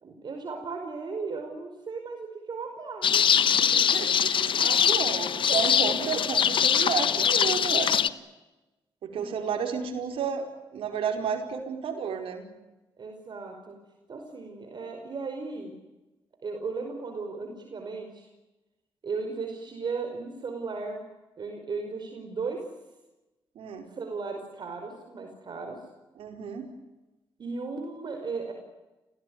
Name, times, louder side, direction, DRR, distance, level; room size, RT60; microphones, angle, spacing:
voice 1, 0.0-3.2 4.5-4.9 5.3-5.7 9.1-9.5 13.0-13.8 14.1-15.7 16.4-18.3 19.0-21.0 21.4-22.6 24.0-25.8 27.4-28.5, right 4 dB, 55° right, 4 dB, 5.2 m, -36 dB
sound 1, 3.0-8.1, left 8 dB, 65° left, 1.1 m, -23 dB
voice 2, 3.6-8.1 9.0-10.5 10.7-12.4 23.6-23.9 26.2-26.7, right 7 dB, 80° right, 4 dB, 5.2 m, -32 dB
28.5 x 17.5 x 9.7 m, 1.1 s
cardioid pair, 75°, 9 cm